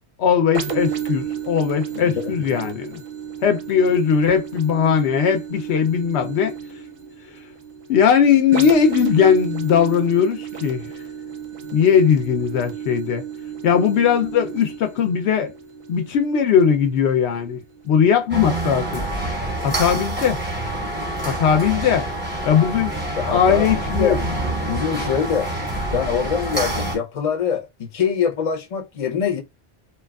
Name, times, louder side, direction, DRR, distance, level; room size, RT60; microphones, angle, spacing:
voice 1, 0.2-3.0 3.4-6.5 7.9-10.9 11.7-13.2 13.6-15.5 15.9-19.1 19.6-20.4 21.3-22.1 22.4-22.9 23.3-24.3, left 7 dB, 85° left, 0.9 m, -19 dB
sound 1, 0.5-18.1 18.6-18.7, right 8 dB, 55° right, 0.6 m, -32 dB
voice 2, 1.9-2.3 23.2-23.7 24.0-24.2 24.7-25.5 25.9-29.4, left 7 dB, 40° left, 0.6 m, -23 dB
sound 2, 18.3-27.0, right 1 dB, 10° right, 0.8 m, -26 dB
2.8 x 2.3 x 2.2 m
omnidirectional pair, 1.1 m